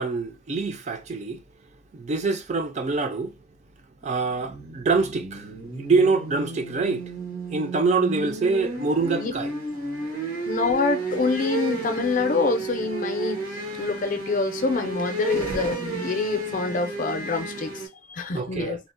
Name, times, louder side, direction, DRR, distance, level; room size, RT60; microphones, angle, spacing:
voice 1, 0.0-1.4 1.9-3.3 4.0-5.5 5.8-7.0 7.5-9.5 18.3-18.8, right 4 dB, 35° right, 0.4 m, -25 dB
sound 1, 4.3-17.9, right 3 dB, 90° right, 1.3 m, -32 dB
voice 2, 10.4-13.4 13.8-17.7 18.1-18.8, left 4 dB, 40° left, 0.4 m, -26 dB
3.5 x 2.0 x 2.4 m
head